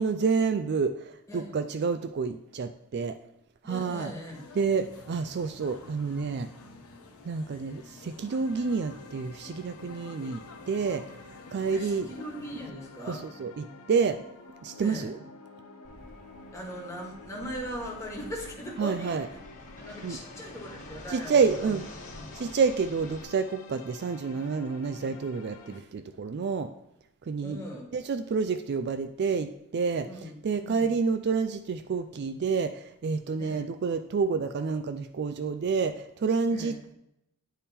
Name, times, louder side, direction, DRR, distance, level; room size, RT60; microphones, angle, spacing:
voice 1, 0.0-3.2 3.6-4.1 4.6-6.5 7.3-11.0 11.5-12.1 13.1-14.2 14.6-15.2 18.8-19.3 20.0-20.2 21.1-21.8 22.4-26.7 27.3-27.6 27.9-30.1 30.4-36.9, right 5 dB, 50° right, 9 dB, 0.3 m, -29 dB
voice 2, 3.6-4.4 11.7-13.2 14.8-15.1 16.5-19.4 19.8-21.8 22.1-22.3 27.4-27.9 30.1-30.3 30.6-30.9 33.4-33.6 36.5-36.8, equal, 15° left, -3 dB, 1.7 m, -39 dB
sound 1, 4.3-12.7, left 2 dB, 85° left, 1.1 m, -50 dB
sound 2, 8.4-25.8, left 3 dB, 70° left, 0.7 m, -50 dB
Fixed-wing aircraft airplane, 15.8-23.2, left 1 dB, 35° left, 1.4 m, -48 dB
10.0 x 3.5 x 4.2 m, 0.83 s
head